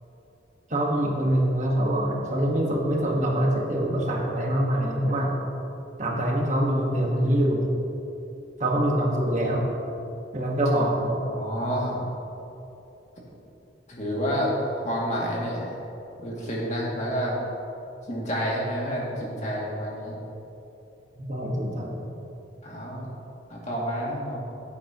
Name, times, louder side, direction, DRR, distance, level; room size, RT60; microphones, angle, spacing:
voice 1, 0.7-5.4 6.0-7.7 8.6-9.7 10.3-11.2 21.2-22.0, right 1 dB, 40° right, -1 dB, 1.5 m, -24 dB
voice 2, 11.3-12.1 13.9-14.5 14.8-15.7 16.2-17.4 18.1-20.2 22.6-23.1 23.5-24.4, equal, 40° left, -4 dB, 2.3 m, -29 dB
17.0 x 8.5 x 3.0 m, 2.9 s
head